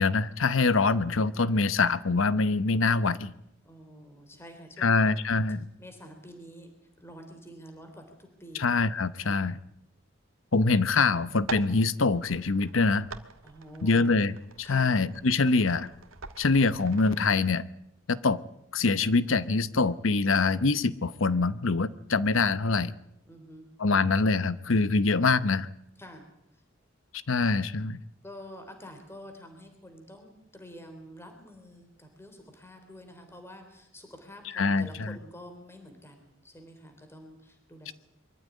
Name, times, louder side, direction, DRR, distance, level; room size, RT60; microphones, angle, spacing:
voice 1, 0.0-3.3 4.8-5.6 8.6-9.6 10.5-13.1 13.8-15.9 16.4-17.7 18.1-18.4 18.7-22.9 23.8-25.7 27.3-28.0 34.6-35.1, left 3 dB, 70° left, 16 dB, 0.9 m, -24 dB
voice 2, 3.6-5.0 5.8-6.7 7.0-8.7 9.2-9.4 13.4-14.2 14.6-14.9 23.3-23.7 26.0-26.3 26.5-26.6 28.2-37.9, equal, 10° left, 5 dB, 3.5 m, -48 dB
sound 1, 11.3-17.2, right 4 dB, 85° right, 1.7 m, -44 dB
23.5 x 14.5 x 9.5 m, 0.78 s
head